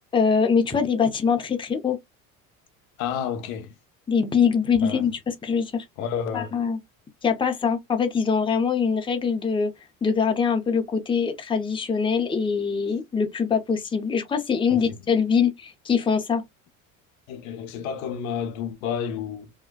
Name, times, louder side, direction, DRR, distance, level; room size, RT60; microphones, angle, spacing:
voice 1, 0.1-2.0 4.1-5.8 6.3-6.8 7.2-9.7 10.0-16.4, left 6 dB, 10° left, 0.6 m, -23 dB
voice 2, 3.0-3.7 4.8-5.1 6.0-6.6 14.7-15.0 17.3-19.5, left 8 dB, 75° left, 0.7 m, -30 dB
2.4 x 2.2 x 2.3 m
hypercardioid pair, 80°, 42 cm